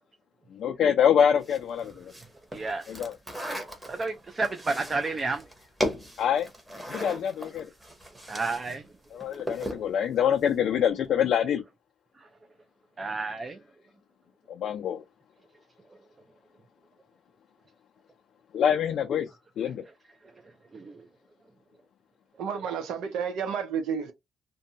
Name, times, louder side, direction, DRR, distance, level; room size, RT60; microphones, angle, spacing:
voice 1, 0.5-2.1 2.9-3.2 6.2-6.5 6.9-7.7 9.2-11.6 14.5-15.0 18.5-19.3 19.6-19.8, left 8 dB, 70° left, 0.4 m, -25 dB
sound 1, 1.4-8.8 9.0-9.9, equal, 10° right, 1.0 m, -37 dB
voice 2, 2.5-3.0 3.5-5.5 7.9-8.0 8.3-8.9 12.1-12.3 13.0-13.6 15.9-16.0 20.2-21.1, right 3 dB, 30° right, 0.5 m, -32 dB
voice 3, 22.4-24.1, right 7 dB, 85° right, 0.7 m, -31 dB
2.6 x 2.2 x 2.7 m
cardioid pair, 90°, 0 cm